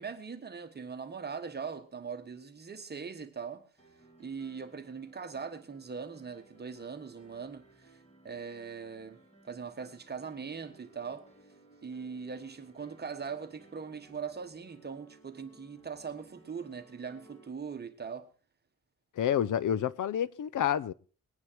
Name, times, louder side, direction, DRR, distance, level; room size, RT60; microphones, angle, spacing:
voice 1, 0.0-3.6 4.2-8.0 8.2-11.3 11.8-18.3, right 6 dB, 30° right, 1.3 m, -41 dB
Piano, 3.8-17.5, right 2 dB, 20° left, 2.9 m, -60 dB
voice 2, 19.2-20.9, left 9 dB, 65° left, 0.7 m, -29 dB
20.5 x 9.6 x 4.6 m
wide cardioid pair, 165°, 33 cm